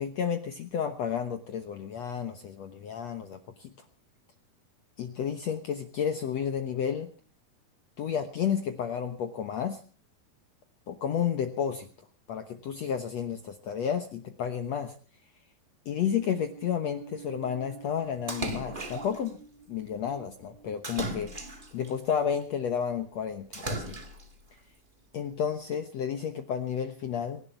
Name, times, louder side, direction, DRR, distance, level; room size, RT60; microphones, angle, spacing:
voice 1, 0.0-3.7 5.0-7.1 8.0-9.8 10.9-11.9 12.3-14.9 15.8-19.4 19.7-21.3 21.7-23.9 25.1-27.4, left 8 dB, 75° left, 7 dB, 1.5 m, -31 dB
sound 1, 16.0-22.4, right 7 dB, 70° right, 3.0 m, -50 dB
Splash splatter, 18.3-19.3 20.8-21.9 23.5-24.3, right 2 dB, 40° right, 0.7 m, -36 dB
25.0 x 11.5 x 4.5 m, 0.40 s
omnidirectional pair, 4.6 m